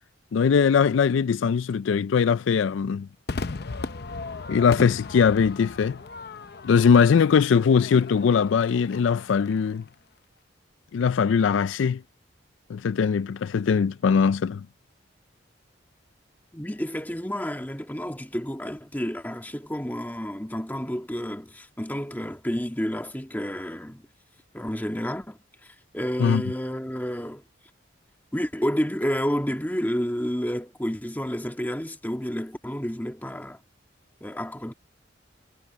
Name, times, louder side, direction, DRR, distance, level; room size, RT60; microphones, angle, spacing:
voice 1, 0.3-3.1 4.5-6.0 6.6-9.8 10.9-12.0 12.7-14.6 26.2-26.4, left 6 dB, 80° left, 0.4 m, -21 dB
Crowd / Fireworks, 3.3-9.8, left 3 dB, 55° left, 0.7 m, -37 dB
voice 2, 16.5-24.0 24.5-27.4 28.3-33.6 34.2-34.7, equal, 10° left, 1.7 m, -30 dB
head